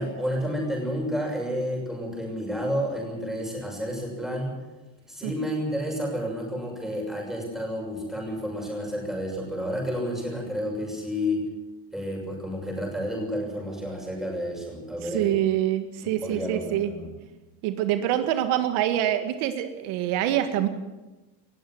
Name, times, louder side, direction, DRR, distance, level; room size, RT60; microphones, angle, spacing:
voice 1, 0.0-4.6 5.1-11.4 11.9-15.3 16.0-17.1, equal, ahead, -1 dB, 6.5 m, -30 dB
voice 2, 15.0-16.9 17.6-20.7, right 12 dB, 75° right, 8 dB, 1.9 m, -25 dB
19.5 x 15.0 x 9.5 m, 1.1 s
cardioid pair, 170°, 50 cm